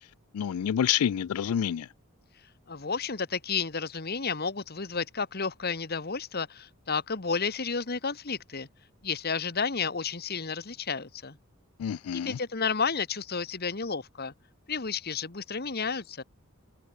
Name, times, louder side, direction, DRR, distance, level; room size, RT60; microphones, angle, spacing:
voice 1, 0.3-1.9 11.8-12.4, left 9 dB, 90° left, 0.4 m, -28 dB
voice 2, 2.7-8.7 9.0-11.4 12.1-14.3 14.7-16.2, left 5 dB, 45° left, 1.4 m, -31 dB
head